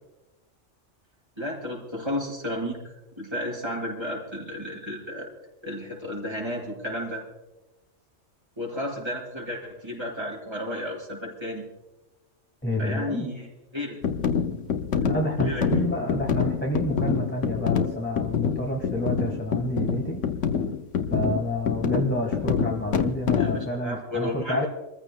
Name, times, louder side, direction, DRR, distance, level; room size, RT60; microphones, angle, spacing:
voice 1, 1.4-2.8 3.2-5.3 5.6-7.2 8.6-11.6 12.8-13.5 13.7-14.0 15.4-15.6 23.4-24.7, left 1 dB, 20° right, -3 dB, 5.4 m, -32 dB
voice 2, 12.6-13.3 15.1-20.2 21.1-24.7, equal, 10° left, 0 dB, 1.6 m, -29 dB
sound 1, 14.0-23.7, left 6 dB, 80° left, 1.2 m, -26 dB
28.5 x 14.5 x 2.2 m, 1.0 s
omnidirectional pair, 1.2 m